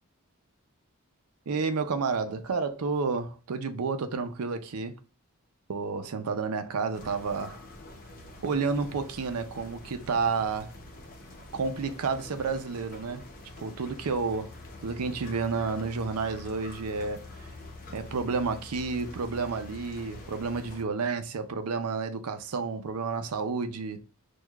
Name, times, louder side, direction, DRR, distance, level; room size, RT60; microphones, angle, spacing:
voice 1, 1.5-5.0 5.7-7.6 8.4-10.7 11.5-13.2 13.6-14.5 14.8-17.2 17.9-24.0, right 4 dB, 85° right, 0.5 m, -30 dB
sound 1, 6.9-20.8, left 2 dB, 40° left, 0.8 m, -46 dB
6.2 x 2.3 x 2.3 m
head